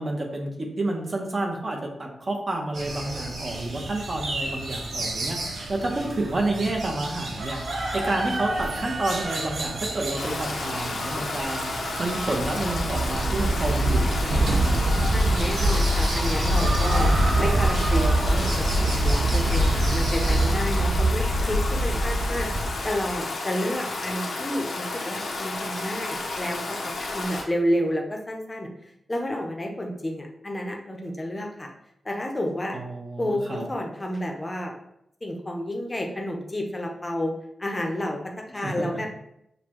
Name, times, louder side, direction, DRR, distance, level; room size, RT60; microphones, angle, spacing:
voice 1, 0.0-7.6 7.9-11.6 12.0-14.7 32.7-33.7 38.5-38.9, right 2 dB, 35° right, 0 dB, 0.9 m, -29 dB
sound 1, 2.7-20.6, right 2 dB, 80° right, 0.9 m, -33 dB
Stream, 10.2-27.4, left 3 dB, 75° left, 0.8 m, -32 dB
sound 2, 12.1-23.1, right 1 dB, 60° right, 0.5 m, -23 dB
voice 2, 15.1-17.1 17.4-28.7 29.1-31.7 32.0-32.8 33.2-34.7 35.2-37.3 37.6-39.1, equal, 20° left, 2 dB, 0.7 m, -30 dB
6.6 x 2.3 x 3.0 m, 0.79 s
wide cardioid pair, 115°, 0 cm